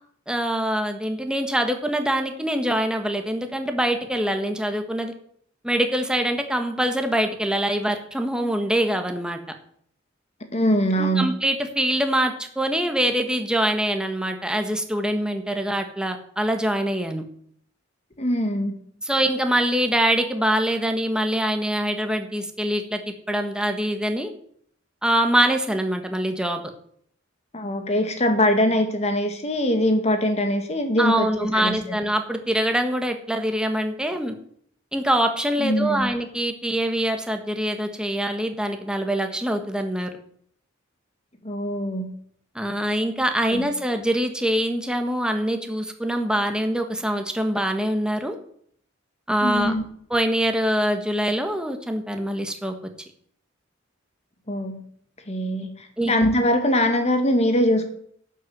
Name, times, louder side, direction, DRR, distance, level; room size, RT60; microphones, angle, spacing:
voice 1, 0.3-5.1 5.6-9.4 11.0-17.2 19.0-24.3 25.0-26.6 31.0-34.3 34.9-40.1 42.5-48.4 49.3-49.7 50.1-52.7 56.0-56.1, right 1 dB, 5° right, 5 dB, 1.5 m, -24 dB
voice 2, 10.5-11.3 18.2-18.8 27.5-32.0 35.6-36.1 41.4-42.1 43.5-43.7 49.4-49.8 54.5-54.8 55.3-57.9, equal, 35° left, 6 dB, 2.2 m, -22 dB
11.5 x 7.9 x 8.0 m, 0.63 s
head